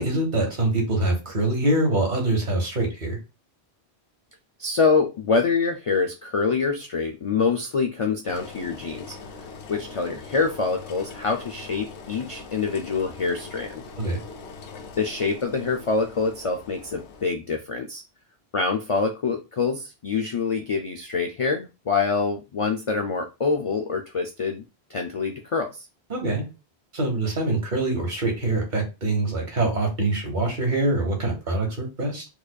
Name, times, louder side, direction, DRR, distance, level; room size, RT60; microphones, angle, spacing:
voice 1, 0.0-3.2 14.0-14.2 26.1-26.4 26.9-32.3, right 2 dB, 45° right, 1.4 m, -24 dB
voice 2, 4.6-9.1 9.7-13.8 15.0-18.0 18.5-24.6 24.9-25.9, left 4 dB, 60° left, 0.3 m, -25 dB
Engine, 8.3-17.3, left 4 dB, 85° left, 0.9 m, -42 dB
4.7 x 2.5 x 2.3 m
omnidirectional pair, 1.1 m